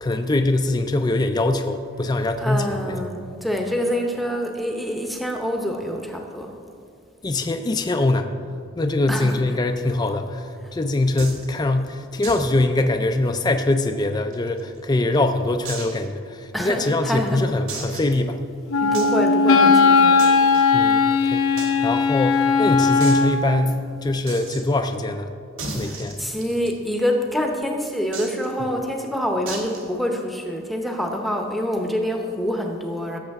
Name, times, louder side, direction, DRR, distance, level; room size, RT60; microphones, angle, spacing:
voice 1, 0.0-3.0 7.2-8.3 8.8-18.4 20.7-21.4 21.8-25.3 25.7-26.2 28.6-28.8, left 2 dB, 20° left, 6 dB, 0.3 m, -23 dB
voice 2, 2.4-6.5 9.1-9.4 16.5-17.4 18.8-20.2 25.8-33.2, equal, ahead, 2 dB, 0.8 m, -26 dB
sound 1, 11.2-11.5 12.2-12.5 12.8-12.9 13.3-13.4 14.0-14.8 15.6-16.0 16.6-16.7 17.7-18.2 18.9-19.2 20.2-20.6 21.6-21.7 22.0-22.1 22.3-22.4 23.0-23.2 24.3-24.6 25.6-26.7 28.1-28.5 29.5-29.8, right 3 dB, 75° right, 1.8 m, -34 dB
Wind instrument woodwind instrument, 18.7-23.5, left 4 dB, 85° left, 0.7 m, -17 dB
17.0 x 7.2 x 3.5 m, 2.3 s
head